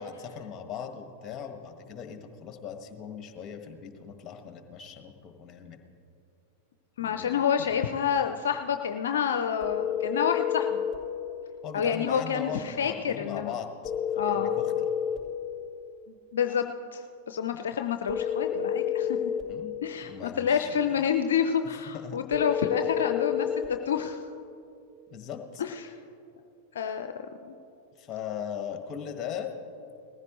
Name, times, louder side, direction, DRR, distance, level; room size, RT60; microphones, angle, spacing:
voice 1, 0.0-5.8 7.0-7.8 11.6-13.9 14.3-14.7 19.5-19.7 20.0-20.8 21.6-22.3 25.1-25.6 28.0-29.5, left 8 dB, 30° left, 5 dB, 1.6 m, -39 dB
voice 2, 7.0-10.8 11.7-13.5 14.2-14.5 16.1-16.6 16.9-19.2 19.8-23.5 23.9-24.2 25.6-26.0 26.7-27.1 27.4-27.5, left 7 dB, 70° left, 7 dB, 0.5 m, -28 dB
sound 1, 9.6-11.0 13.8-15.2 18.1-19.5 22.3-23.7, left 8 dB, ahead, 4.1 m, -29 dB
19.5 x 14.5 x 3.1 m, 2.6 s
figure-of-eight pair, 95°, 0 cm